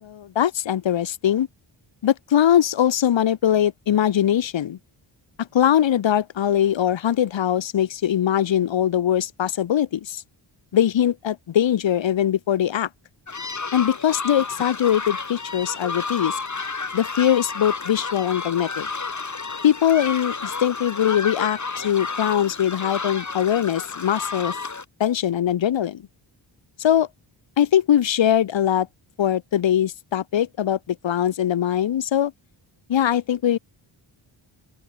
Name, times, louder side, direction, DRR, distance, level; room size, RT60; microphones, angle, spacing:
voice 1, 0.0-1.5 2.0-4.8 5.4-10.2 10.7-12.9 13.7-16.4 16.9-18.9 19.6-24.5 25.0-26.0 26.8-27.1 27.6-28.9 29.2-32.3 32.9-33.6, left 10 dB, 65° left, 1.0 m, -21 dB
sound 1, 13.3-24.8, left 4 dB, 35° left, 2.6 m, -31 dB
open air
cardioid pair, 55°, 49 cm